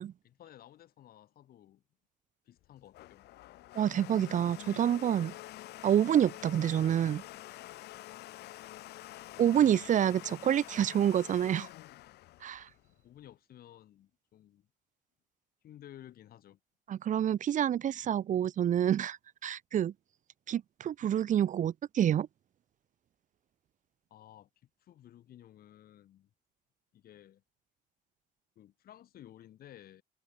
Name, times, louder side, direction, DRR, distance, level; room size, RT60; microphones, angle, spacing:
voice 1, 0.2-1.8 2.5-3.3 9.3-10.0 13.0-14.7 15.6-16.6 24.1-26.3 26.9-27.4 28.6-30.0, left 12 dB, 60° left, 5.7 m, -54 dB
Domestic sounds home sounds, 2.6-13.3, left 16 dB, 80° left, 3.3 m, -47 dB
voice 2, 3.8-5.3 5.8-7.2 9.4-11.7 12.4-12.7 16.9-19.2 19.4-19.9 20.5-22.3, right 10 dB, 50° right, 0.9 m, -28 dB
cardioid pair, 110°, 17 cm